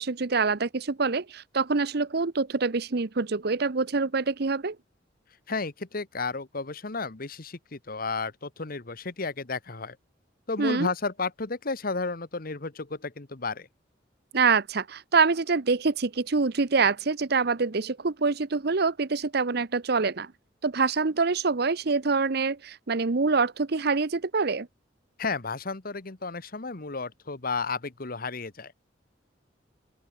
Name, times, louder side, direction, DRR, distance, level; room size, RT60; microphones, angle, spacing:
voice 1, 0.0-4.8 10.6-10.9 14.3-20.3 20.6-24.7, right 4 dB, 60° right, 0.8 m, -25 dB
voice 2, 5.5-10.0 10.5-13.7 25.2-28.7, left 4 dB, 55° left, 1.3 m, -32 dB
open air
head